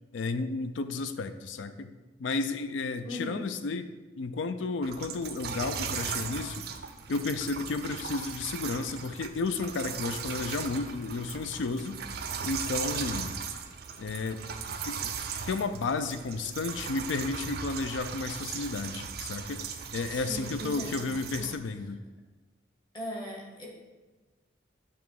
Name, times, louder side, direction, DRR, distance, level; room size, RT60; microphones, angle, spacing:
voice 1, 0.1-3.9 4.2-6.7 7.1-12.0 12.4-13.4 14.0-14.4 14.8-15.2 15.5-19.6 19.9-22.0, left 3 dB, 75° left, 11 dB, 0.4 m, -32 dB
voice 2, 3.0-3.4 20.1-21.5 22.9-23.7, equal, 25° left, -1 dB, 1.1 m, -39 dB
sound 1, 4.8-21.6, right 6 dB, 55° right, 0.4 m, -38 dB
7.1 x 3.0 x 4.7 m, 1.2 s
head